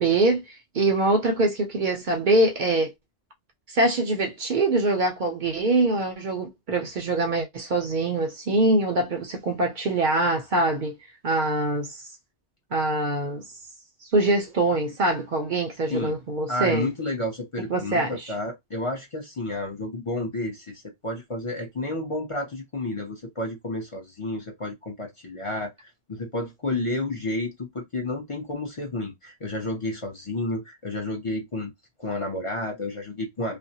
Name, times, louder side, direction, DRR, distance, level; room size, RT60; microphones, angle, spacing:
voice 1, 0.0-2.9 3.7-10.9 11.2-12.0 12.7-13.4 14.1-16.9 17.6-18.3, right 2 dB, 55° right, 0.6 m, -24 dB
voice 2, 16.5-31.7 32.0-33.6, left 2 dB, 35° left, 0.6 m, -31 dB
2.4 x 2.1 x 2.6 m
omnidirectional pair, 1.1 m